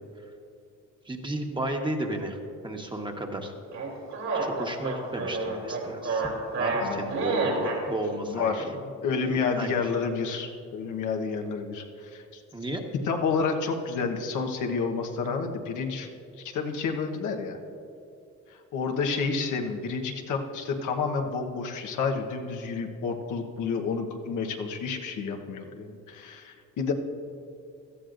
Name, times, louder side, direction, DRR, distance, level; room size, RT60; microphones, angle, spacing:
voice 1, 1.0-2.4 2.6-3.5 4.4-6.3 6.6-8.7 9.2-9.8 12.5-12.8, right 1 dB, 15° right, 2 dB, 1.3 m, -33 dB
sound 1, 3.7-7.8, right 3 dB, 65° right, 3.3 m, -29 dB
voice 2, 6.8-7.2 7.4-7.7 8.2-8.7 9.0-12.4 13.0-16.1 16.4-17.6 18.5-26.9, left 5 dB, 80° left, 3 dB, 1.2 m, -30 dB
17.0 x 13.0 x 2.6 m, 2.5 s
cardioid pair, 90°, 30 cm